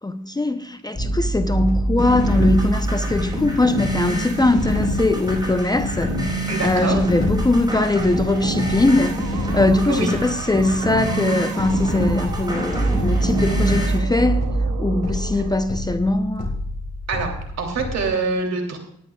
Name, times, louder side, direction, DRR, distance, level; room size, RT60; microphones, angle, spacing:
voice 1, 0.0-14.5 14.8-16.5, left 2 dB, 15° left, 0.7 m, -21 dB
sound 1, 0.9-18.1, right 1 dB, 30° left, 3.9 m, -27 dB
sound 2, 2.0-14.0, equal, 15° right, 4.8 m, -26 dB
voice 2, 6.5-7.0 9.9-10.1 15.3-15.4 17.1-18.8, right 3 dB, 60° right, 3.1 m, -25 dB
sound 3, 7.9-15.6, right 11 dB, 85° right, 0.9 m, -37 dB
18.5 x 10.5 x 2.4 m
cardioid pair, 90°, 30 cm